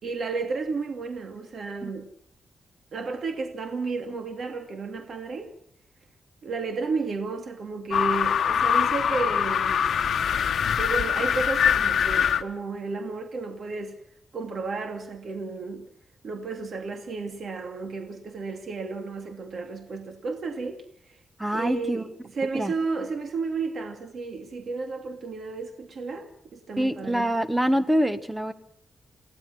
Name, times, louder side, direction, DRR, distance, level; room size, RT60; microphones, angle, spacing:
voice 1, 0.0-2.1 2.9-5.5 6.4-9.8 10.7-14.0 14.3-15.9 16.2-20.8 21.1-21.2 21.5-22.1 22.4-27.3, right 4 dB, 55° right, 2.7 m, -32 dB
sound 1, 7.9-12.4, left 8 dB, 75° left, 1.1 m, -23 dB
voice 2, 21.4-22.0 22.5-22.7 26.8-28.5, equal, 5° right, 1.3 m, -25 dB
29.5 x 16.5 x 6.1 m
wide cardioid pair, 140°, 0 cm